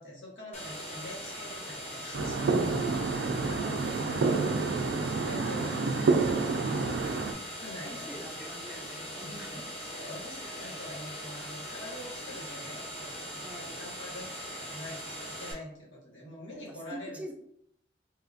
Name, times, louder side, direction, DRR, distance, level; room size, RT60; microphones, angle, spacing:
voice 1, 0.0-7.2 7.6-8.4 9.5-17.2, left 1 dB, 85° left, -5 dB, 1.2 m, -46 dB
sound 1, 0.5-15.5, equal, 35° left, 0.7 m, -41 dB
sound 2, 2.1-7.3, right 4 dB, 80° right, 0.3 m, -28 dB
voice 2, 7.0-9.7 13.4-13.8 16.5-16.6 17.1-17.3, right 1 dB, 5° right, 1 dB, 0.4 m, -46 dB
3.6 x 2.4 x 2.4 m, 0.72 s
head